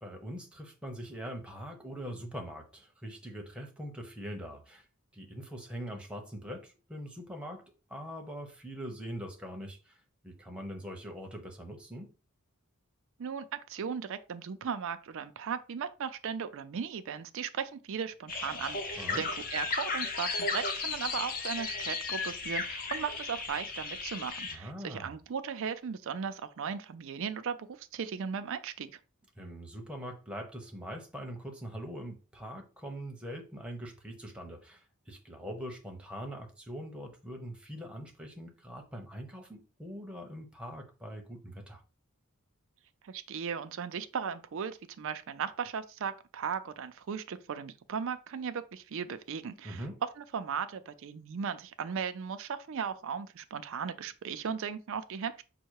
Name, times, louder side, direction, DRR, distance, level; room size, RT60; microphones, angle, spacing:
voice 1, 0.0-4.9 5.1-12.1 19.0-19.2 24.5-25.2 29.4-41.8 49.6-50.0, equal, 5° right, 0.8 m, -43 dB
voice 2, 13.2-28.9 43.0-49.9 50.2-55.4, right 6 dB, 60° right, 0.4 m, -37 dB
sound 1, 18.3-24.6, left 4 dB, 40° left, 0.7 m, -35 dB
5.4 x 2.1 x 4.7 m
head